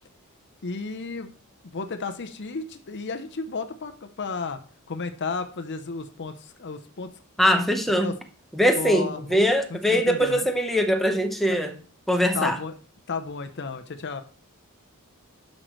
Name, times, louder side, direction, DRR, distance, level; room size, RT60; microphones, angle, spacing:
voice 1, 0.6-1.3 1.6-4.6 4.9-7.1 8.0-8.1 8.8-9.4 9.7-10.5 11.5-11.6 12.3-12.7 13.1-14.2, left 4 dB, 50° left, 8 dB, 0.7 m, -33 dB
voice 2, 7.4-8.1 8.5-11.7 12.1-12.6, equal, ahead, 3 dB, 0.9 m, -22 dB
10.5 x 6.4 x 3.1 m, 0.40 s
head